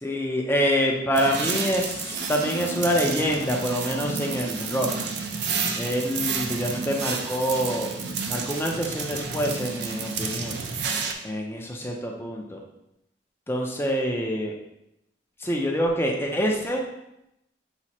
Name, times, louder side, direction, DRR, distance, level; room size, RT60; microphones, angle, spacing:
voice 1, 0.0-4.9 5.8-7.9 8.3-10.6 11.2-12.6 13.5-14.5 15.4-16.8, equal, 10° left, 0 dB, 0.5 m, -26 dB
sound 1, 1.1-11.1, right 5 dB, 60° right, 0.5 m, -30 dB
5.9 x 2.1 x 4.1 m, 0.85 s
head